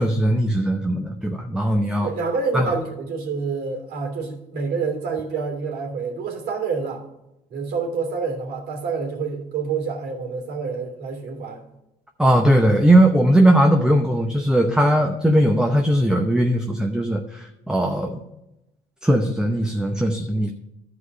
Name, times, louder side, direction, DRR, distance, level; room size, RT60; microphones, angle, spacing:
voice 1, 0.0-2.1 2.5-2.7 12.2-18.2 19.0-20.5, right 1 dB, 5° right, 3 dB, 0.8 m, -19 dB
voice 2, 2.0-7.0 7.5-11.7, right 5 dB, 70° right, 2 dB, 3.1 m, -27 dB
12.5 x 4.9 x 5.4 m, 0.89 s
cardioid pair, 110°, 17 cm